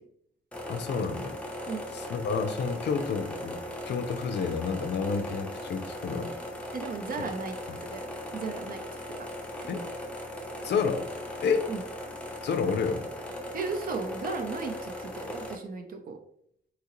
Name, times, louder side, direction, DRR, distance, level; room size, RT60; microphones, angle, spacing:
sound 1, 0.5-15.6, left 1 dB, 5° left, 0.5 m, -38 dB
voice 1, 0.7-1.3 1.9-3.6 3.9-6.3 9.7-9.8 10.6-11.1 11.4-11.7 12.4-13.1, left 5 dB, 80° left, 8 dB, 0.5 m, -29 dB
voice 2, 6.7-8.8 9.2-9.3 9.6-9.9 11.7-11.8 13.5-16.2, right 4 dB, 55° right, 5 dB, 0.6 m, -36 dB
3.7 x 2.9 x 2.9 m, 0.69 s
wide cardioid pair, 165°, 18 cm